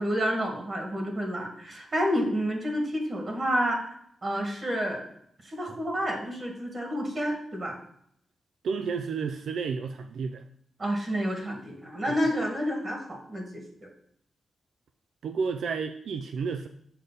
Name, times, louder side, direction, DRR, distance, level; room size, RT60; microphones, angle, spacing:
voice 1, 0.0-3.9 4.2-5.0 5.4-7.7 10.8-13.9, equal, 40° right, 2 dB, 1.7 m, -29 dB
voice 2, 8.6-10.4 12.1-12.2 15.2-16.7, right 5 dB, 80° right, 6 dB, 0.4 m, -31 dB
6.7 x 5.2 x 3.9 m, 0.70 s
cardioid pair, 95°, 0 cm